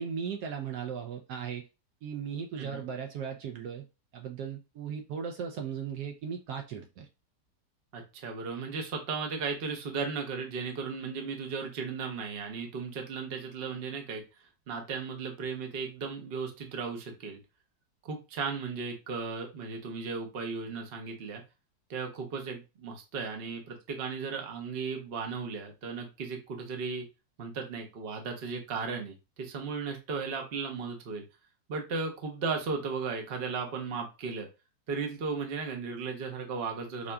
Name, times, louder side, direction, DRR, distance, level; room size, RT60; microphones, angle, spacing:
voice 1, 0.0-1.7 2.0-3.8 4.1-7.1, right 7 dB, 70° right, 1.0 m, -37 dB
voice 2, 7.9-14.2 14.7-17.4 18.0-21.4 21.9-27.0 27.4-31.2 31.7-34.5 34.9-37.1, right 5 dB, 50° right, 0.7 m, -36 dB
4.8 x 2.6 x 2.2 m
omnidirectional pair, 2.0 m